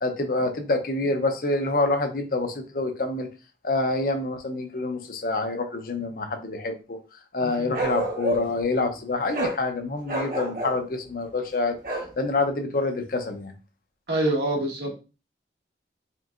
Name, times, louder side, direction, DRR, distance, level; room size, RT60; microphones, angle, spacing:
voice 1, 0.0-3.3 3.6-7.0 7.3-13.5, left 2 dB, 50° left, 6 dB, 0.6 m, -27 dB
voice 2, 7.4-7.7 14.1-14.9, right 1 dB, 65° right, 0 dB, 1.3 m, -26 dB
Bark, 7.7-8.6 9.3-9.6 10.1-10.8 11.8-12.1, right 1 dB, 50° right, 1.1 m, -28 dB
4.4 x 3.4 x 2.4 m, 0.32 s
head